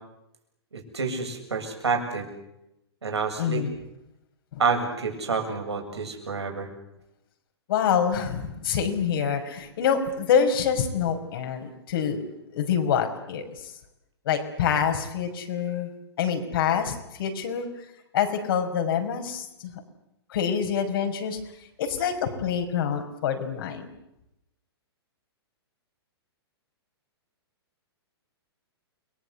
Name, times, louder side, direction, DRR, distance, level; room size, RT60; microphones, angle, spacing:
voice 1, 0.7-2.3 3.0-3.6 4.6-6.7, right 4 dB, 85° right, 3 dB, 7.7 m, -28 dB
voice 2, 3.4-3.7 4.5-4.6 7.7-12.2 12.5-13.7 14.3-15.9 16.2-17.7 18.1-19.7 20.3-21.4 21.8-23.9, left 7 dB, 55° left, 5 dB, 5.8 m, -26 dB
30.0 x 21.5 x 8.3 m, 0.87 s
hypercardioid pair, 120°, 14 cm